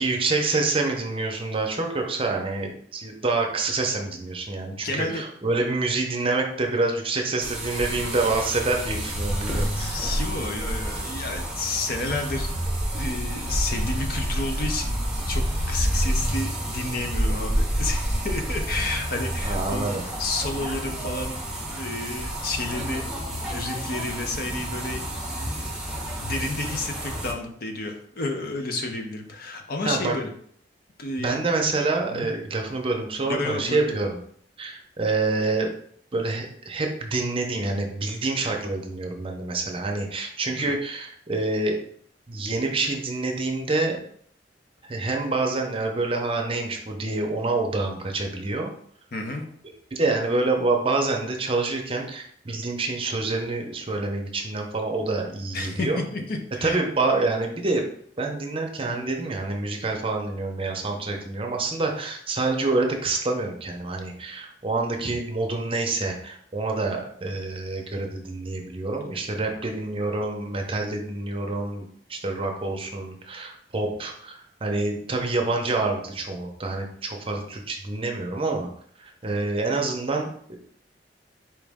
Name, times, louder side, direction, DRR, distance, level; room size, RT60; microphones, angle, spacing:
voice 1, 0.0-9.9 19.4-20.0 29.8-30.2 31.2-34.2 34.6-35.7 36.1-41.8 42.3-44.0 44.8-48.7 49.9-56.0 56.6-57.9 58.2-78.7 79.0-80.6, right 3 dB, 30° right, 2 dB, 0.7 m, -27 dB
voice 2, 4.8-5.2 9.6-12.5 12.9-21.4 21.7-23.0 23.5-25.8 26.2-30.3 31.0-31.4 32.1-32.3 33.2-33.9 40.6-40.7 49.1-49.4 55.5-56.8, left 2 dB, 55° left, 4 dB, 0.7 m, -31 dB
sound 1, 7.4-27.3, equal, 5° right, 0.9 m, -29 dB
4.6 x 3.1 x 3.5 m, 0.63 s
head